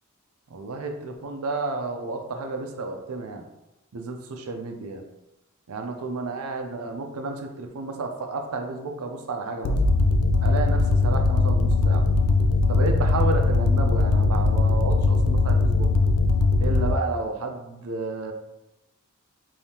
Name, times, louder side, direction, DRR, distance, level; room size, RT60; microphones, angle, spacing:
voice 1, 0.5-3.4 3.9-5.0 5.7-9.8 10.4-12.0 12.7-15.9 16.6-18.3, right 3 dB, 80° right, 4 dB, 0.5 m, -31 dB
sound 1, 9.6-17.0, left 3 dB, 70° left, 0.3 m, -20 dB
3.4 x 2.7 x 2.8 m, 0.94 s
head